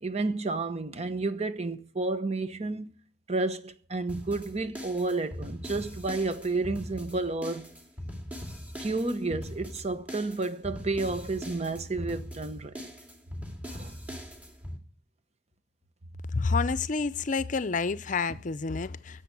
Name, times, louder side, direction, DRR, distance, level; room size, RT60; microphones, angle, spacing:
voice 1, 0.0-2.9 3.3-7.7 8.8-12.8 13.7-13.9, right 3 dB, 40° right, 1.0 m, -31 dB
sound 1, 4.1-14.8, equal, 10° right, 2.4 m, -41 dB
voice 2, 16.3-19.2, left 4 dB, 45° left, 0.6 m, -29 dB
10.5 x 7.7 x 9.5 m
head